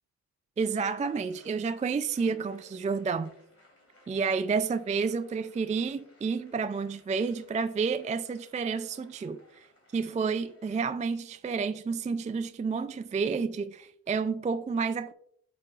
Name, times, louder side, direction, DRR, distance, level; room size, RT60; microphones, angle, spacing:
voice 1, 0.6-3.3 4.1-9.7 9.9-15.1, right 5 dB, 20° right, 0.3 m, -30 dB
sound 1, 1.1-10.8, left 2 dB, 40° left, 2.8 m, -60 dB
8.4 x 6.7 x 2.4 m
cardioid pair, 65°, 37 cm